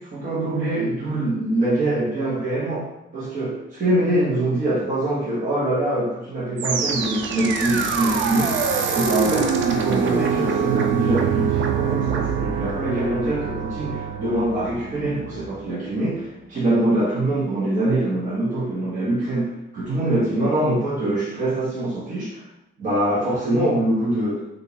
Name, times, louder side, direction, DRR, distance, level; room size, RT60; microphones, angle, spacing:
voice 1, 0.0-8.6 8.9-22.5 22.8-24.4, right 1 dB, 40° right, -8 dB, 1.0 m, -24 dB
sound 1, 6.6-15.7, right 6 dB, 75° right, 0.5 m, -24 dB
3.5 x 2.5 x 2.8 m, 0.92 s
cardioid pair, 90°, 20 cm